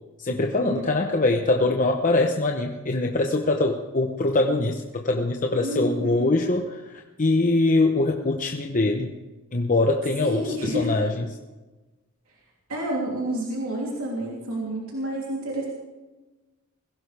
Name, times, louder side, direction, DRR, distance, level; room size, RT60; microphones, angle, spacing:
voice 1, 0.2-6.9 7.2-9.1 9.5-11.2, left 2 dB, 35° left, 3 dB, 0.8 m, -23 dB
voice 2, 5.6-6.3 10.2-11.0 12.7-15.7, right 1 dB, 75° right, -4 dB, 3.1 m, -29 dB
21.5 x 16.5 x 3.4 m, 1.2 s
head